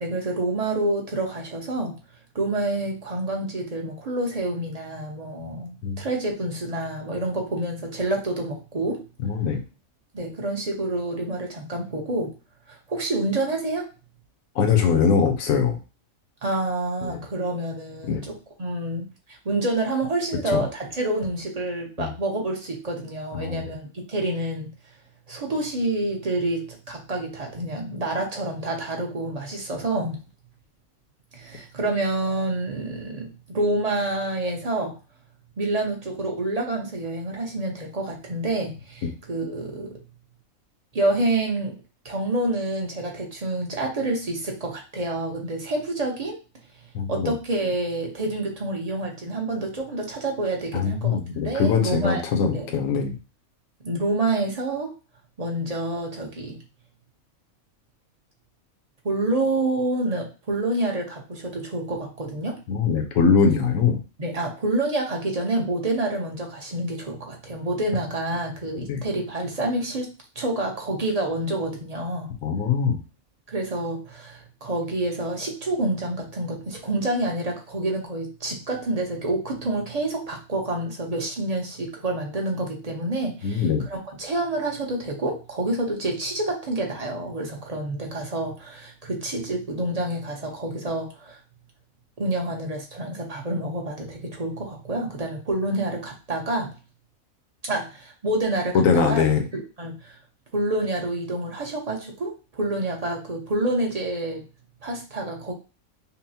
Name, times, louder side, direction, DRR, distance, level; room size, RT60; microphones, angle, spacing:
voice 1, 0.0-2.0 2.3-9.0 10.1-12.3 12.7-13.9 16.4-24.7 25.3-30.2 31.3-35.0 35.6-40.0 40.9-41.8 42.0-46.4 47.1-51.2 51.4-52.2 52.5-52.7 53.8-54.9 55.4-56.6 59.0-62.6 64.2-70.1 70.4-72.3 73.5-91.4 92.2-96.7 97.6-99.2 99.5-100.2 100.5-104.5 104.8-105.5, right 2 dB, 35° right, 1 dB, 0.8 m, -28 dB
voice 2, 9.2-9.6 14.6-15.8 17.0-17.2 18.1-18.2 20.5-20.6 22.0-22.1 23.3-23.6 46.9-47.3 50.7-53.1 62.7-64.0 68.9-69.0 72.4-73.0 83.4-83.8 98.7-99.4, left 6 dB, 75° left, 5 dB, 1.2 m, -22 dB
5.5 x 2.1 x 2.8 m, 0.32 s
omnidirectional pair, 1.4 m